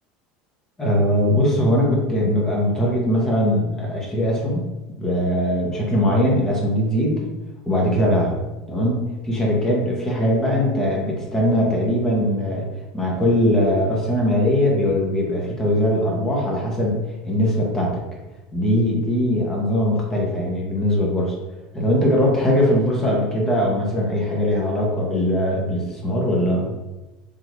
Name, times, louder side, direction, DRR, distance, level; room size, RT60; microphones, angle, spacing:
voice 1, 0.8-4.6 5.0-7.3 7.7-8.3 8.7-12.7 12.9-17.0 17.2-18.0 18.5-21.3 21.7-26.7, equal, 15° left, -3 dB, 1.0 m, -20 dB
3.7 x 2.7 x 3.1 m, 1.1 s
supercardioid pair, 125°, 3 cm